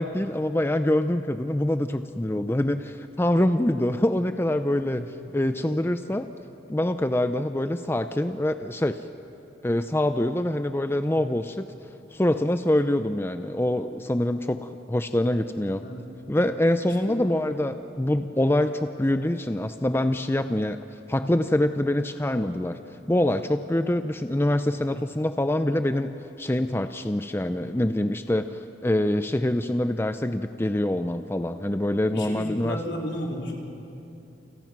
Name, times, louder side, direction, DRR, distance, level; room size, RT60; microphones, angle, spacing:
voice 1, 0.0-6.3 6.7-9.0 9.6-11.7 12.1-15.8 16.3-20.8 21.1-22.8 23.1-32.8, left 1 dB, 15° left, 9 dB, 0.5 m, -25 dB
voice 2, 32.1-33.5, equal, 75° left, -1 dB, 4.3 m, -34 dB
29.5 x 26.0 x 6.1 m, 2.8 s
head